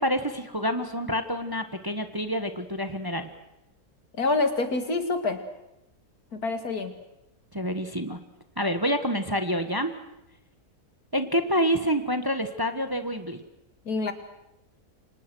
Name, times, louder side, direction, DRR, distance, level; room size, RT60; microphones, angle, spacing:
voice 1, 0.0-3.3 7.5-8.2 8.6-9.9 11.1-13.4, equal, 15° right, 8 dB, 1.3 m, -27 dB
voice 2, 4.2-5.4 6.3-6.9 13.9-14.1, left 3 dB, 70° left, 7 dB, 2.8 m, -26 dB
29.5 x 25.5 x 6.3 m, 0.87 s
omnidirectional pair, 1.6 m